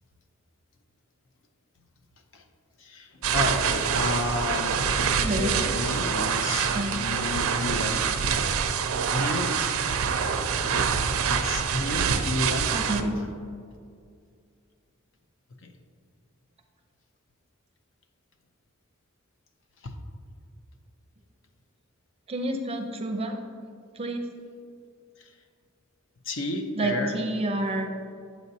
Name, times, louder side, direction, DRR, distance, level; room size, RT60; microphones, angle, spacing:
voice 1, 2.8-4.8 5.2-8.1 9.1-9.6 10.6-11.0 11.3-13.3 15.6-15.7 19.8-19.9 25.2-25.4 26.2-27.2, left 2 dB, 65° left, 5 dB, 0.6 m, -32 dB
sound 1, 3.2-13.0, right 6 dB, 85° right, 0.5 m, -26 dB
voice 2, 5.2-5.7 6.7-6.9 12.7-13.2 22.3-23.4 23.9-24.2 26.8-28.1, right 1 dB, 30° right, 4 dB, 0.5 m, -29 dB
8.0 x 6.2 x 2.7 m, 2.3 s
head